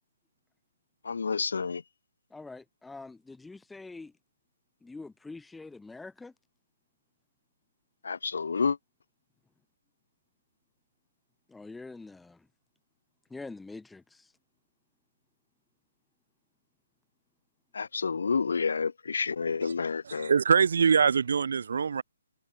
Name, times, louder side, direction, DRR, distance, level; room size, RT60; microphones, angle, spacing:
voice 1, 1.0-1.8 8.0-8.8 17.7-20.3, left 5 dB, 70° left, 0.5 m, -29 dB
voice 2, 2.3-4.1 4.8-6.3 11.5-12.5 13.3-14.3, left 3 dB, 5° left, 1.4 m, -45 dB
voice 3, 20.0-22.0, right 6 dB, 65° right, 2.6 m, -24 dB
hypercardioid pair, 145°, 0 cm